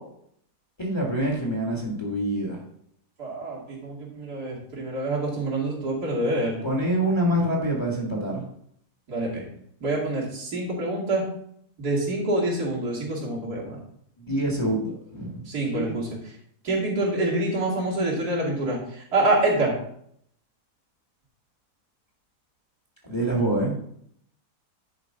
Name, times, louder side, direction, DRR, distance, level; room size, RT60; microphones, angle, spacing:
voice 1, 0.8-2.6 6.6-8.4 14.2-15.5 15.7-15.9 23.0-23.7, right 1 dB, 15° left, -3 dB, 1.6 m, -26 dB
voice 2, 3.2-6.6 9.1-9.5 9.8-11.3 11.8-13.8 15.5-16.1 16.6-19.7, right 2 dB, 75° right, -5 dB, 3.1 m, -26 dB
10.5 x 5.0 x 3.9 m, 0.68 s
omnidirectional pair, 1.7 m